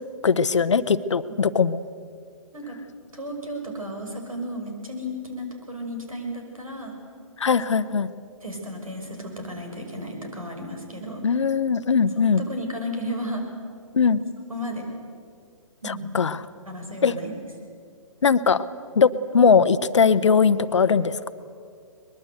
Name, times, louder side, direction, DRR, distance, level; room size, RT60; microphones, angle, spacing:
voice 1, 0.2-1.8 7.4-8.1 11.2-12.4 13.9-14.2 15.8-16.5 17.0-17.1 18.2-18.6 19.0-21.3, left 6 dB, 60° left, 14 dB, 0.9 m, -20 dB
voice 2, 3.1-7.0 7.7-7.8 8.4-11.3 12.2-13.5 14.5-14.8 15.8-16.1 16.7-17.4, equal, 80° right, 2 dB, 5.9 m, -34 dB
23.0 x 21.0 x 8.0 m, 2.3 s
figure-of-eight pair, 125°, 18 cm